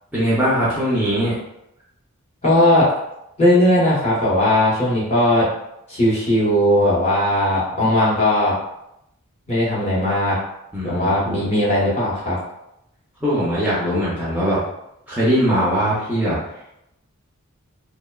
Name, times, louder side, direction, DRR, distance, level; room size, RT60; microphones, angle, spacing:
voice 1, 0.1-1.4 10.7-11.2 13.2-14.6 15.1-16.4, equal, 5° right, -9 dB, 0.4 m, -20 dB
voice 2, 2.4-2.9 3.4-5.5 5.9-8.5 9.5-10.4 10.8-12.4, left 1 dB, 30° left, -7 dB, 0.8 m, -18 dB
2.8 x 2.0 x 2.2 m, 0.83 s
head